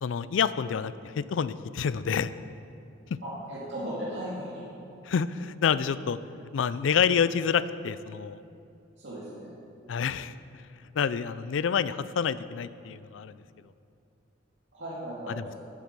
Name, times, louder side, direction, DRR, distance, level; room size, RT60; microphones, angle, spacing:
voice 1, 0.0-2.3 5.0-6.2 6.5-8.4 9.9-10.3 10.9-13.3 15.3-15.5, left 7 dB, 90° left, 15 dB, 0.4 m, -28 dB
voice 2, 3.2-4.6 9.0-9.5 14.7-15.5, equal, 70° right, -8 dB, 2.1 m, -37 dB
12.0 x 7.7 x 5.3 m, 2.7 s
head